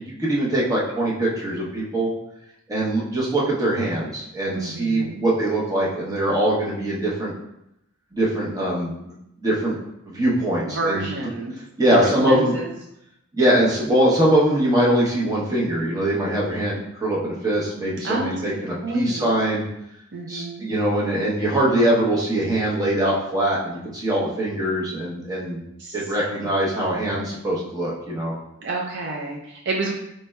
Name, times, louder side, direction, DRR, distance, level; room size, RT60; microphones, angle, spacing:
voice 1, 0.0-2.1 2.7-7.3 8.1-9.8 10.1-11.1 11.8-12.6 13.3-19.6 20.3-25.6 25.9-28.3, right 1 dB, 15° right, -5 dB, 0.8 m, -22 dB
voice 2, 4.5-5.3 10.7-11.5 11.9-12.7 18.0-18.3 18.8-19.3 20.1-20.7 25.8-26.6 28.6-29.9, right 2 dB, 55° right, -1 dB, 0.5 m, -29 dB
4.1 x 3.1 x 2.3 m, 0.81 s
head